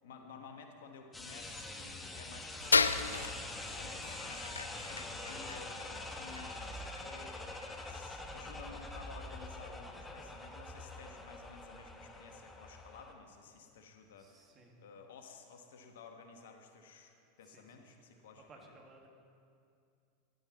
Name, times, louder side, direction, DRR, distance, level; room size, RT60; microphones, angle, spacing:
voice 1, 0.0-18.7, left 5 dB, 70° left, 5 dB, 1.2 m, -54 dB
sound 1, 1.1-13.1, left 2 dB, 15° left, 1.3 m, -45 dB
sound 2, 2.6-9.3, left 4 dB, 90° left, 0.3 m, -36 dB
voice 2, 14.2-14.8 17.4-18.1 18.5-19.1, right 3 dB, 35° right, 2 dB, 2.0 m, -60 dB
14.0 x 11.0 x 4.1 m, 2.4 s
hypercardioid pair, 85°, 0 cm